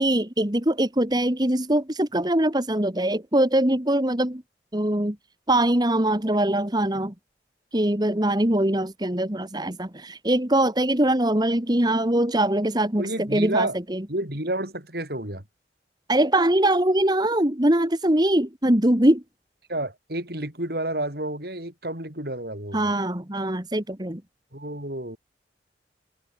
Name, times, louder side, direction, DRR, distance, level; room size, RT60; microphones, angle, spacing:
voice 1, 0.0-4.4 4.7-5.2 5.5-7.1 7.7-14.1 16.1-19.2 22.7-24.2, right 1 dB, 25° right, 2.0 m, -22 dB
voice 2, 13.0-13.8 14.1-15.4 19.7-22.8 24.5-25.2, right 1 dB, 60° right, 7.8 m, -30 dB
head